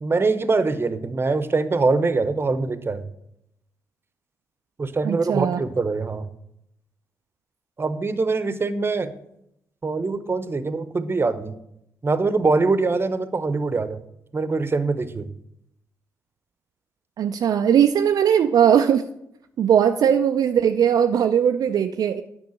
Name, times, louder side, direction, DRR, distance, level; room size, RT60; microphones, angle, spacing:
voice 1, 0.0-3.0 4.8-6.3 7.8-9.1 9.8-11.5 12.0-14.0 14.3-15.3, right 3 dB, 35° right, 12 dB, 0.9 m, -23 dB
voice 2, 5.0-5.6 17.2-19.0 19.6-22.2, right 8 dB, 60° right, 6 dB, 0.4 m, -19 dB
9.3 x 5.4 x 6.4 m, 0.78 s
hypercardioid pair, 45°, 7 cm